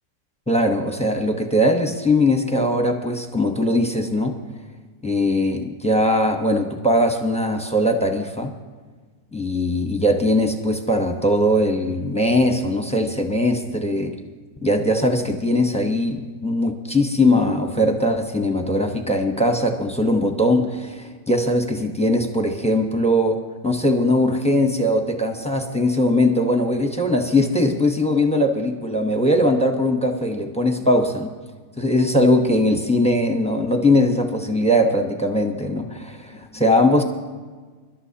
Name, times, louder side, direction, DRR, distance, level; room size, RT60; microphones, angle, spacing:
voice 1, 0.5-4.4 5.0-8.5 9.3-14.1 14.6-23.4 23.6-31.3 31.8-37.0, left 1 dB, 5° left, 3 dB, 0.6 m, -20 dB
24.5 x 12.0 x 2.9 m, 1.5 s
omnidirectional pair, 1.9 m